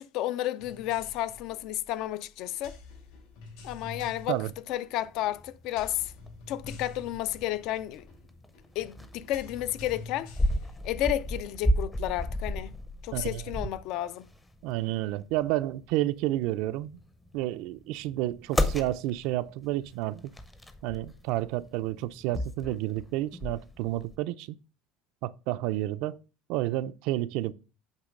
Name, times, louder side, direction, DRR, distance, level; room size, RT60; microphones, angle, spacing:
voice 1, 0.0-2.8 3.6-4.4 4.7-6.1 6.5-8.1 8.8-10.3 10.8-12.7 13.0-14.3, left 13 dB, 55° left, 0.4 m, -32 dB
sound 1, 0.6-11.5, left 3 dB, 80° left, 3.6 m, -48 dB
sound 2, 5.0-24.2, equal, 10° left, 0.6 m, -35 dB
voice 2, 13.1-13.7 14.6-17.0 17.3-20.2 20.8-24.6 25.2-26.2 26.5-27.5, right 15 dB, 65° right, 0.4 m, -30 dB
8.2 x 3.1 x 5.1 m
cardioid pair, 165°, 0 cm